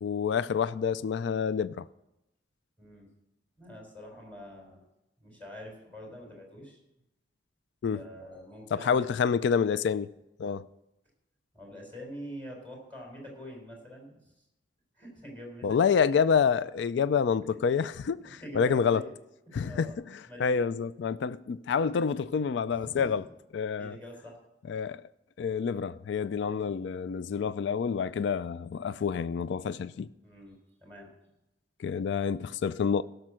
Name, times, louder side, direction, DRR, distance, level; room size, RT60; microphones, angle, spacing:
voice 1, 0.0-1.9 7.8-8.0 8.7-10.1 10.4-10.7 15.6-19.0 19.5-19.9 20.4-23.2 23.5-24.0 24.7-25.0 25.4-30.1 31.8-33.0, left 6 dB, 70° left, 0.3 m, -28 dB
voice 2, 3.6-4.8 5.2-6.8 7.9-9.0 11.5-14.2 14.9-15.8 18.2-19.1 19.4-19.9 20.2-20.6 22.7-23.2 23.8-24.4 26.3-26.7 30.2-31.1, equal, 10° left, 4.2 m, -45 dB
16.5 x 6.7 x 6.2 m
head